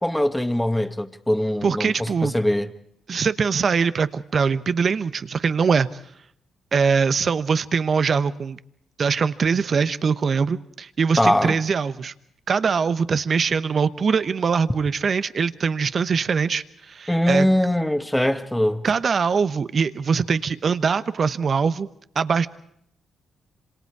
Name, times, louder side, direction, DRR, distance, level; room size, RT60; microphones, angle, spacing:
voice 1, 0.0-2.7 11.2-11.6 17.1-18.8, left 1 dB, 10° left, 1.8 m, -22 dB
voice 2, 1.6-2.3 3.1-5.9 6.7-8.6 9.0-12.1 12.5-17.5 18.8-21.9 22.1-22.5, right 5 dB, 50° right, 1.0 m, -22 dB
27.0 x 26.5 x 4.8 m
supercardioid pair, 50°, 0 cm